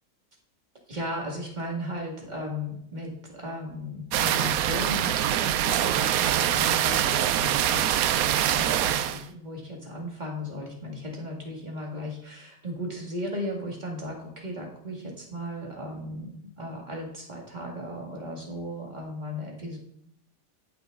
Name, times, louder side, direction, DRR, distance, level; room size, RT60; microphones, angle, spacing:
voice 1, 0.9-19.8, equal, 25° right, -1 dB, 2.1 m, -36 dB
sound 1, 4.1-9.2, right 11 dB, 70° right, 0.9 m, -24 dB
15.0 x 6.1 x 3.8 m, 0.74 s
omnidirectional pair, 1.9 m